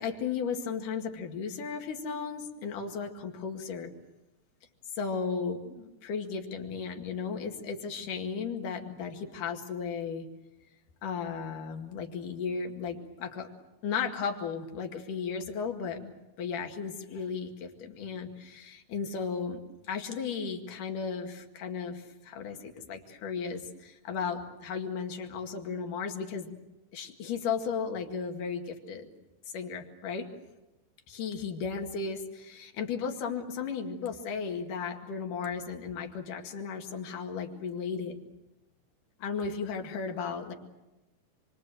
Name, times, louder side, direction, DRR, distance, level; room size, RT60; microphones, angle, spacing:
voice 1, 0.0-3.9 5.0-10.3 11.0-13.5 13.8-26.6 26.9-29.1 29.5-30.3 31.1-38.2 39.2-40.5, left 6 dB, 70° left, 4 dB, 3.6 m, -35 dB
28.0 x 23.0 x 7.8 m, 1.0 s
omnidirectional pair, 3.9 m